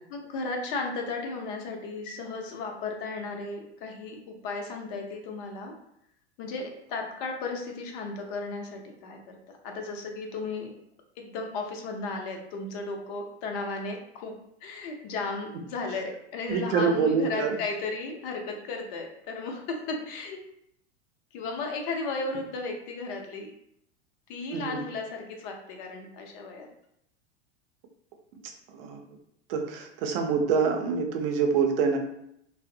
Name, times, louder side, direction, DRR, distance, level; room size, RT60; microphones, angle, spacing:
voice 1, 0.1-5.7 6.4-9.4 9.6-10.7 11.2-14.3 14.6-20.4 21.3-23.5 24.3-26.7, left 3 dB, 50° left, 2 dB, 0.6 m, -35 dB
voice 2, 16.5-17.6 24.5-24.8 28.7-29.0 29.5-32.0, right 5 dB, 60° right, 4 dB, 0.6 m, -26 dB
2.5 x 2.0 x 2.6 m, 0.75 s
hypercardioid pair, 100°, 33 cm